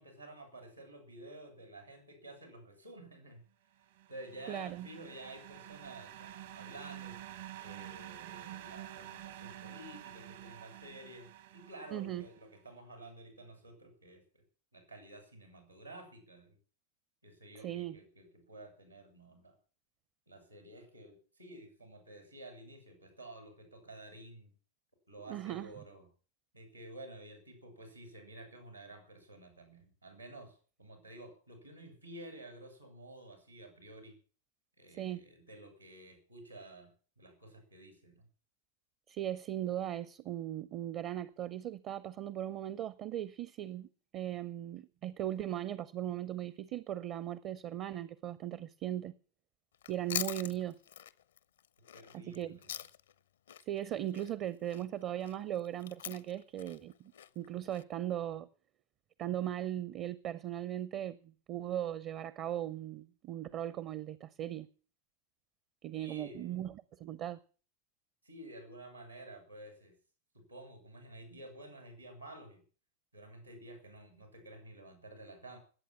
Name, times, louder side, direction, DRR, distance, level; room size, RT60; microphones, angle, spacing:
voice 1, 0.0-3.4 4.1-7.2 7.6-14.4 14.7-16.6 17.2-19.6 20.3-24.5 25.1-26.1 26.5-34.2 34.8-36.9 37.2-38.2 51.9-52.8 65.9-66.6 68.2-69.9 70.3-72.6 73.1-75.6, right 1 dB, 90° right, 6.6 m, -51 dB
sound 1, 3.8-12.4, right 12 dB, 60° right, 1.2 m, -49 dB
voice 2, 4.5-4.9 11.9-12.3 17.6-18.0 25.2-25.8 35.0-35.2 39.1-49.1 49.9-50.8 52.1-52.6 53.6-58.5 59.2-64.7 65.8-67.4, right 12 dB, 35° right, 0.7 m, -38 dB
Chewing mastication, 49.7-53.2 53.5-57.8, left 10 dB, 65° left, 0.7 m, -43 dB
20.0 x 8.6 x 7.2 m
figure-of-eight pair, 90°, 0 cm